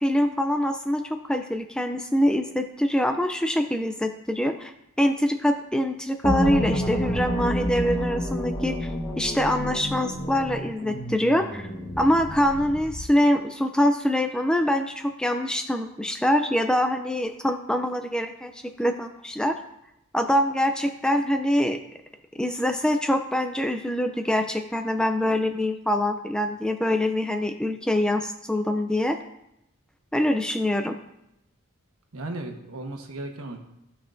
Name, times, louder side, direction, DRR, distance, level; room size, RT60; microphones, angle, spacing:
voice 1, 0.0-4.7 5.0-8.9 9.2-11.7 12.0-19.6 20.1-21.8 22.4-29.2 30.1-31.0, left 1 dB, 5° left, 7 dB, 0.3 m, -24 dB
sound 1, 6.2-13.1, equal, 20° left, 1.1 m, -29 dB
voice 2, 32.1-33.6, right 2 dB, 80° right, 3 dB, 1.2 m, -35 dB
15.0 x 5.6 x 2.6 m, 0.85 s
head